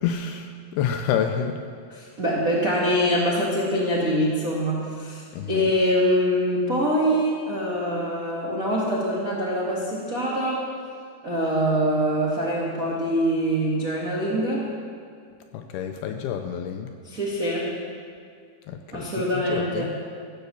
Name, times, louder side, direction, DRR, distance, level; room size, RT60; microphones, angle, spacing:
voice 1, 0.0-1.6 5.3-5.7 15.5-17.0 18.7-19.9, left 8 dB, 80° left, 5 dB, 2.3 m, -28 dB
voice 2, 1.9-10.7 11.2-14.7 17.0-17.7 18.9-19.9, equal, 80° right, -6 dB, 0.7 m, -24 dB
15.0 x 8.0 x 6.9 m, 2.2 s
omnidirectional pair, 4.9 m